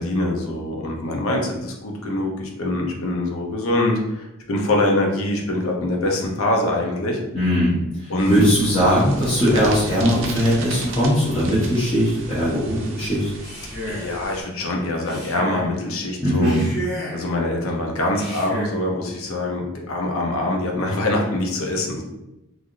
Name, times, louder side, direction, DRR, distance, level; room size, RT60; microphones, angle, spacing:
voice 1, 0.0-7.2 8.1-8.4 8.7-8.8 13.9-16.6 17.1-22.0, left 1 dB, 70° left, 0 dB, 0.6 m, -24 dB
voice 2, 7.3-13.3 16.2-16.7, equal, 25° left, -11 dB, 0.8 m, -20 dB
sound 1, 8.2-14.4, right 2 dB, 55° right, 0.5 m, -35 dB
Male speech man speaking, 13.3-14.2 15.0-15.7 16.3-17.3 18.1-18.8, equal, 45° left, 1.3 m, -33 dB
3.2 x 2.5 x 2.5 m, 0.94 s
head